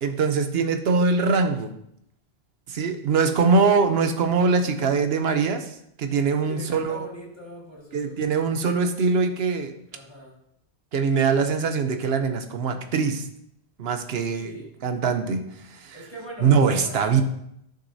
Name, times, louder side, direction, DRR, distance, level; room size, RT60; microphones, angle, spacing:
voice 1, 0.0-1.7 2.7-7.1 7.9-9.7 10.9-13.3 13.8-14.5 14.8-16.0 16.4-17.2, right 5 dB, 75° right, 7 dB, 1.0 m, -22 dB
voice 2, 3.4-3.8 6.4-8.6 9.9-10.4 14.2-14.8 15.9-17.2, left 1 dB, 25° left, -3 dB, 2.0 m, -42 dB
11.5 x 6.5 x 2.7 m, 0.74 s
omnidirectional pair, 1.1 m